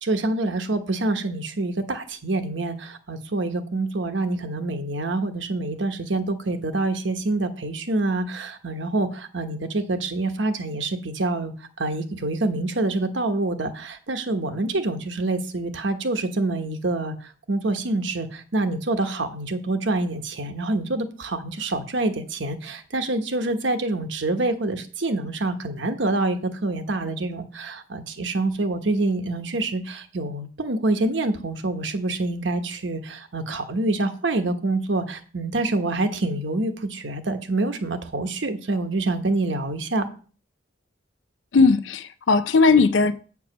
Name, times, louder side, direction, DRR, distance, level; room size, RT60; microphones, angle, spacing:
voice 1, 0.0-40.1, right 2 dB, 65° right, 1.1 m, -26 dB
voice 2, 41.5-43.1, left 4 dB, 70° left, 0.5 m, -18 dB
8.5 x 4.8 x 6.0 m
head